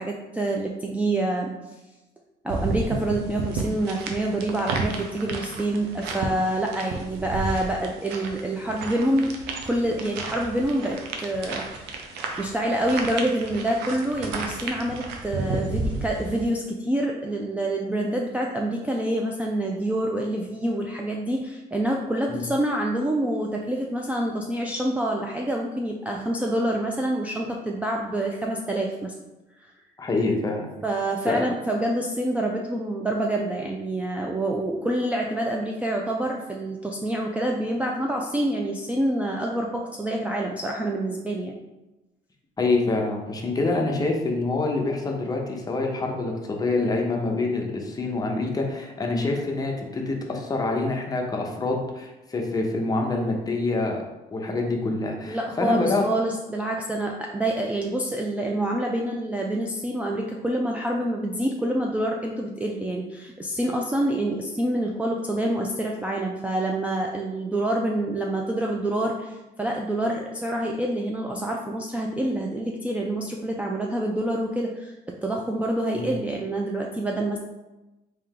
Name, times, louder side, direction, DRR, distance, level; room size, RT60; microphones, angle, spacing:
voice 1, 0.0-1.5 2.4-9.3 9.7-29.1 29.6-29.7 30.8-41.6 55.3-77.4, right 1 dB, 10° right, -1 dB, 0.3 m, -27 dB
sound 1, 2.5-16.4, right 3 dB, 85° right, 0.6 m, -32 dB
voice 2, 30.0-30.7 31.3-31.5 42.6-54.0 54.3-56.0 75.9-76.1, left 3 dB, 20° left, 1 dB, 0.7 m, -26 dB
3.4 x 2.7 x 3.6 m, 1.0 s
cardioid pair, 110°, 17 cm